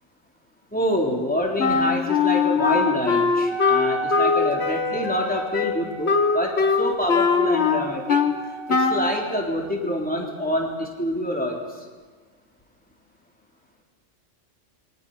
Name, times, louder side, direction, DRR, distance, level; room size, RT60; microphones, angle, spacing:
voice 1, 0.7-8.2 8.7-11.6, equal, 5° left, -1 dB, 3.6 m, -26 dB
Wind instrument woodwind instrument, 1.6-8.4 8.7-9.1, left 5 dB, 60° left, 1.6 m, -21 dB
Wind instrument woodwind instrument 2, 3.4-9.2, right 4 dB, 50° right, 1.4 m, -34 dB
27.0 x 23.5 x 5.6 m, 1.4 s
omnidirectional pair, 1.3 m